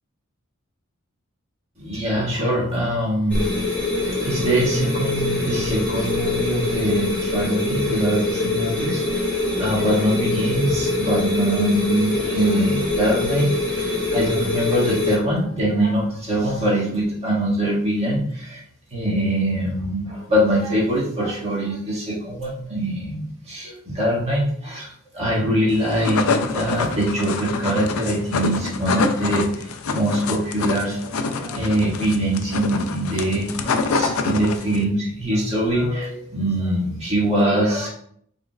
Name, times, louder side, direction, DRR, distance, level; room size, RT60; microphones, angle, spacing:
voice 1, 1.8-3.5 4.2-9.3 9.6-18.6 18.9-37.9, right 1 dB, 30° right, -6 dB, 1.6 m, -23 dB
sound 1, 3.3-15.2, left 2 dB, 5° left, 1.5 m, -24 dB
sound 2, 25.8-34.8, left 4 dB, 80° left, 0.4 m, -26 dB
5.2 x 3.6 x 2.3 m, 0.63 s
head